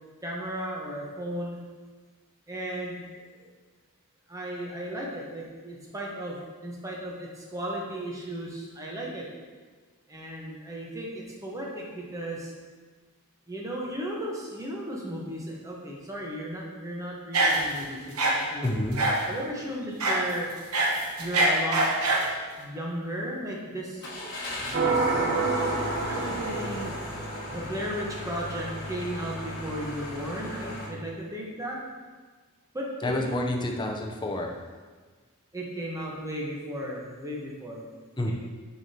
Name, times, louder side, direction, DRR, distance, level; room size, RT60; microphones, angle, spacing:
voice 1, 0.2-1.6 2.5-2.9 4.3-6.4 6.6-8.5 8.8-9.2 10.1-11.1 11.4-11.7 11.9-12.4 13.5-18.0 18.3-18.7 19.2-20.5 21.2-21.8 22.6-23.8 24.8-25.7 26.1-26.9 27.5-31.8 32.7-33.1 35.5-37.8, equal, 15° right, -3 dB, 1.0 m, -35 dB
sound 1, 17.3-17.8 18.2-18.4 19.0-19.3 20.0-20.2 20.6-22.3, right 2 dB, 85° right, 0.9 m, -23 dB
voice 2, 18.6-19.0 33.0-34.5 38.2-38.3, left 1 dB, 20° left, 2 dB, 0.6 m, -28 dB
Car / Engine starting, 24.0-30.9, left 1 dB, 50° left, 1.2 m, -37 dB
sound 2, 24.7-28.2, right 3 dB, 45° right, 0.8 m, -28 dB
6.9 x 5.0 x 2.8 m, 1.4 s
head